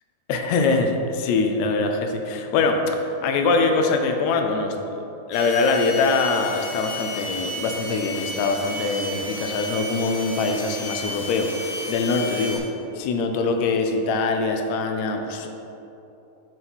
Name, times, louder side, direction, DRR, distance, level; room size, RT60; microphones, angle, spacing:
voice 1, 0.3-4.7 5.3-12.6 12.9-15.5, left 3 dB, 75° left, 4 dB, 1.7 m, -23 dB
sound 1, 5.3-12.6, left 1 dB, 45° left, 1.8 m, -33 dB
7.9 x 3.8 x 6.0 m, 2.9 s
omnidirectional pair, 3.7 m